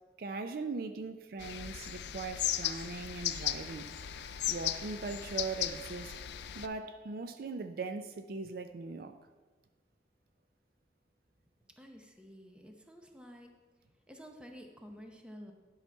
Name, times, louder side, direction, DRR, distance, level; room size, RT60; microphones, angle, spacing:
voice 1, 0.2-3.9 4.5-6.1 6.5-9.1, right 4 dB, 55° right, 9 dB, 0.4 m, -40 dB
sound 1, 1.4-6.7, left 12 dB, 70° left, 0.4 m, -37 dB
Wind instrument woodwind instrument, 3.1-7.8, right 5 dB, 40° right, 0.8 m, -59 dB
voice 2, 11.8-13.5 14.1-15.5, equal, 5° right, 3 dB, 0.8 m, -51 dB
10.5 x 5.7 x 4.5 m, 1.3 s
head